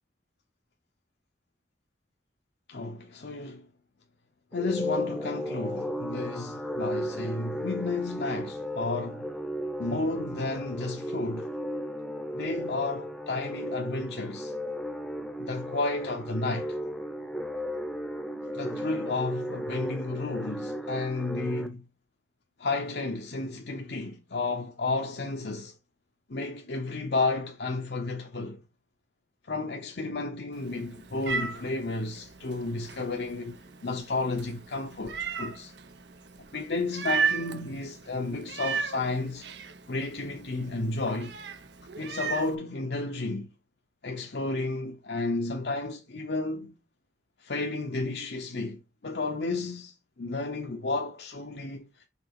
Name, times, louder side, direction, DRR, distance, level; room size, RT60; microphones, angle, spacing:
voice 1, 2.7-3.7 4.5-9.2 9.8-11.5 12.3-14.5 15.4-16.8 18.5-21.9 22.6-25.8 26.3-28.6 29.5-35.7 36.5-39.5 39.9-41.4 42.0-43.5 44.0-46.7 47.4-52.1, left 3 dB, 65° left, 0.9 m, -32 dB
sound 1, 4.5-21.7, equal, ahead, 0.8 m, -35 dB
Meow, 30.5-42.6, right 5 dB, 80° right, 1.0 m, -36 dB
5.9 x 4.0 x 6.0 m
head